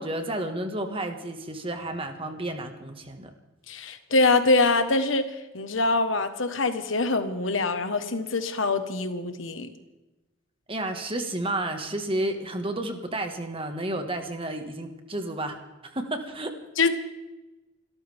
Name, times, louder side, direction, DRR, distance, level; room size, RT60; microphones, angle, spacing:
voice 1, 0.0-3.3 10.7-15.6 15.8-16.5, right 1 dB, 30° right, 6 dB, 1.8 m, -31 dB
voice 2, 3.7-9.7 16.8-16.9, left 3 dB, 75° left, 9 dB, 1.5 m, -24 dB
28.5 x 13.5 x 3.6 m, 1.1 s
head